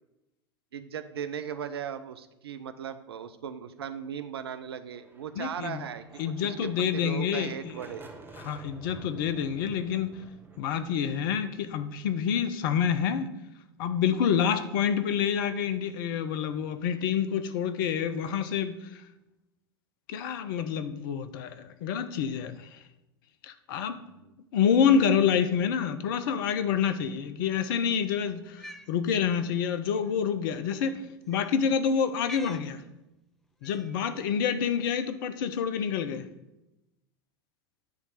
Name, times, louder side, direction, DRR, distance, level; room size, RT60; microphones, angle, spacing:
voice 1, 0.7-8.0 24.1-24.3, right 8 dB, 70° right, 10 dB, 0.5 m, -38 dB
sound 1, 4.8-12.6, right 3 dB, 15° right, 1.1 m, -51 dB
voice 2, 5.4-5.8 6.2-7.8 8.4-10.2 10.6-13.3 13.8-19.0 20.1-22.8 23.4-24.0 24.5-31.0 31.3-32.8 33.6-36.3, left 7 dB, 55° left, 11 dB, 0.7 m, -27 dB
Cat, 28.4-28.9 30.0-30.1 31.3-31.6 32.2-32.7 33.6-34.0, equal, ahead, 0.4 m, -46 dB
9.4 x 3.2 x 6.6 m, 0.94 s
figure-of-eight pair, 85°, 14 cm